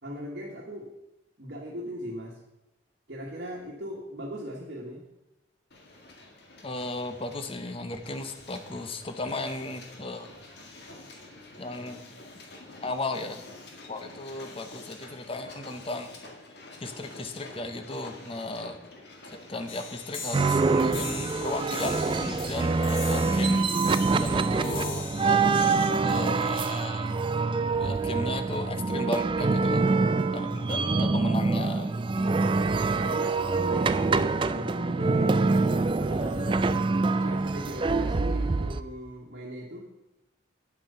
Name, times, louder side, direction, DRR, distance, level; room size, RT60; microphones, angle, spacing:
voice 1, 0.0-0.9 1.4-2.4 3.1-5.1 30.7-31.6 33.0-36.7 37.2-39.9, equal, 55° right, -2 dB, 1.6 m, -38 dB
Hiss, 5.7-23.6, left 2 dB, 60° left, 1.8 m, -47 dB
voice 2, 6.6-10.3 11.6-12.1 12.8-13.4 13.9-16.2 16.8-18.8 19.5-23.7 24.2-27.2 27.8-29.9 30.3-32.4, left 2 dB, 30° left, 8 dB, 0.8 m, -35 dB
sound 1, 19.7-26.7, left 5 dB, 90° left, 1.4 m, -41 dB
sound 2, 20.3-38.8, right 3 dB, 25° right, 0.3 m, -25 dB
9.7 x 7.4 x 5.5 m, 0.96 s
head